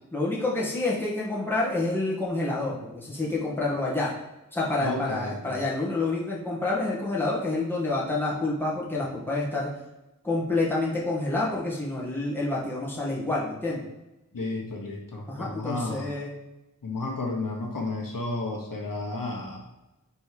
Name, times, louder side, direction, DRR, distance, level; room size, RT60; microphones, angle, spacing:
voice 1, 0.1-4.1 4.5-9.7 10.2-13.8 15.3-16.4, left 2 dB, 5° left, -6 dB, 2.2 m, -28 dB
voice 2, 4.8-5.6 14.3-16.1 16.8-19.6, left 2 dB, 70° left, 0 dB, 1.2 m, -32 dB
5.5 x 4.2 x 4.9 m, 0.98 s
wide cardioid pair, 55°, 34 cm